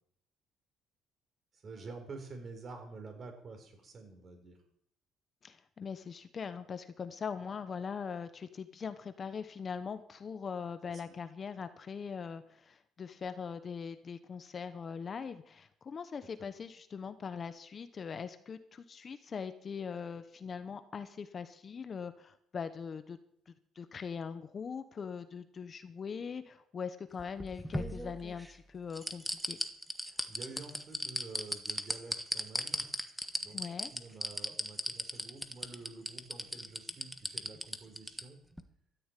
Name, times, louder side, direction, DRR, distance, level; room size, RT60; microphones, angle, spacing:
voice 1, 1.5-4.6 10.8-10.9 30.1-32.9 33.4-38.4, right 3 dB, 35° right, 5 dB, 4.5 m, -49 dB
voice 2, 5.4-23.2 23.5-29.6 33.5-33.9, left 6 dB, 35° left, 11 dB, 0.9 m, -41 dB
sound 1, 27.2-28.5 28.9-38.2 38.6-38.7, equal, ahead, 1.2 m, -36 dB
13.5 x 10.0 x 9.1 m, 0.69 s
cardioid pair, 130°, 0 cm